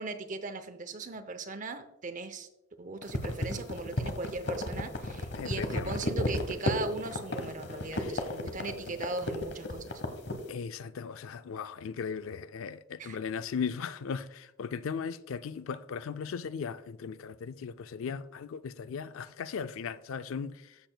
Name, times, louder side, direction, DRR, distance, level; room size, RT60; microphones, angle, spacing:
voice 1, 0.0-2.5 2.8-10.0 13.0-13.2, right 3 dB, 40° right, 0.6 m, -38 dB
sound 1, 3.0-10.4, left 1 dB, 55° left, 1.0 m, -33 dB
voice 2, 5.3-6.0 8.0-8.1 10.5-20.8, left 6 dB, 80° left, 0.4 m, -37 dB
13.5 x 6.8 x 2.2 m
head